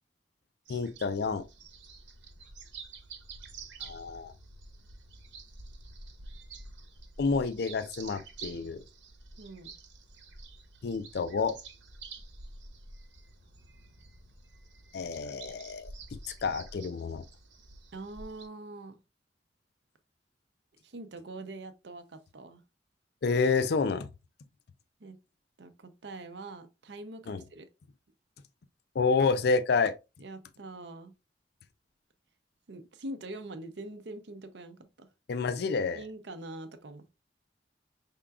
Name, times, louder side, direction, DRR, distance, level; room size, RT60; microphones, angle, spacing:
sound 1, 0.6-18.5, right 4 dB, 85° right, 1.1 m, -49 dB
voice 1, 0.7-1.4 3.8-4.3 7.2-8.8 10.8-11.6 14.9-15.9 16.3-17.2 23.2-24.1 27.3-27.4 28.9-29.9 35.3-36.0, left 4 dB, 60° left, 0.4 m, -29 dB
voice 2, 9.4-9.7 17.9-19.0 20.8-22.6 25.0-25.2 25.6-27.7 30.2-31.1 32.7-35.1 35.9-37.1, right 2 dB, 65° right, 0.6 m, -44 dB
5.6 x 3.7 x 2.3 m
head